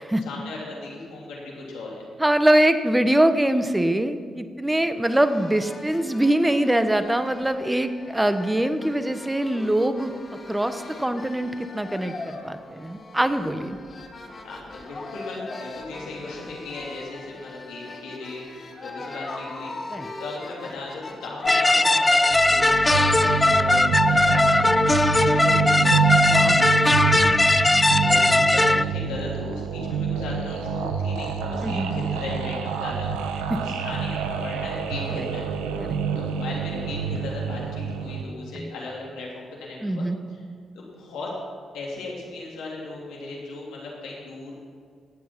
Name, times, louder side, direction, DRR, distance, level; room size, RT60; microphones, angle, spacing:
voice 1, 0.2-2.0 14.4-27.3 28.0-33.1 33.6-35.5 36.2-40.4 40.7-41.3 41.7-44.5, left 3 dB, 75° left, -3 dB, 3.2 m, -37 dB
voice 2, 2.2-10.1 10.5-13.8 19.9-20.1 26.3-26.7 27.1-27.4 31.6-31.9 33.5-33.6 35.2-35.3 35.8-36.0 38.6-38.7 39.8-40.2, right 1 dB, 15° right, 10 dB, 1.1 m, -23 dB
sound 1, 5.0-24.7, left 3 dB, 40° left, 1.9 m, -39 dB
sound 2, 21.5-28.8, left 2 dB, 20° left, 0.4 m, -19 dB
sound 3, 22.3-38.2, right 6 dB, 80° right, 0.9 m, -27 dB
19.5 x 7.7 x 5.8 m, 2.1 s
hypercardioid pair, 45°, 0 cm